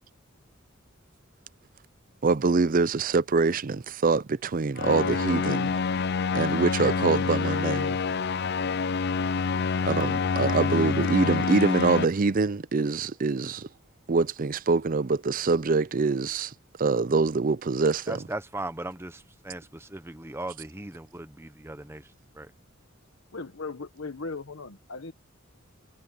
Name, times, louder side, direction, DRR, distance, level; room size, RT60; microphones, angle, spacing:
voice 1, 2.2-5.7 6.3-8.0 9.8-13.7 14.1-16.5 16.8-18.2, right 4 dB, 40° right, 0.5 m, -25 dB
sound 1, 4.8-12.0, left 5 dB, 50° left, 0.5 m, -27 dB
voice 2, 18.1-22.5, right 2 dB, 10° right, 1.0 m, -38 dB
voice 3, 23.3-25.1, left 3 dB, 70° left, 1.3 m, -38 dB
head